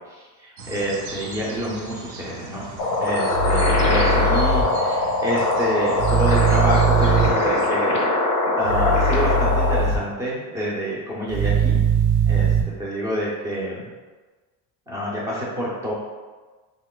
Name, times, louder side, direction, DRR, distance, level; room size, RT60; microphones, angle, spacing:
voice 1, 0.0-2.7 3.0-8.1 8.6-11.8 12.3-13.9 14.9-15.9, equal, 10° right, -6 dB, 0.3 m, -27 dB
sound 1, 0.6-7.7, right 3 dB, 60° right, 0.6 m, -38 dB
sound 2, 2.8-9.8, left 2 dB, 40° left, 0.5 m, -22 dB
sound 3, 3.3-4.6 6.0-7.3 8.6-10.0 11.3-12.6, right 4 dB, 80° right, 1.0 m, -20 dB
2.8 x 2.3 x 3.6 m, 1.3 s
cardioid pair, 155°, 46 cm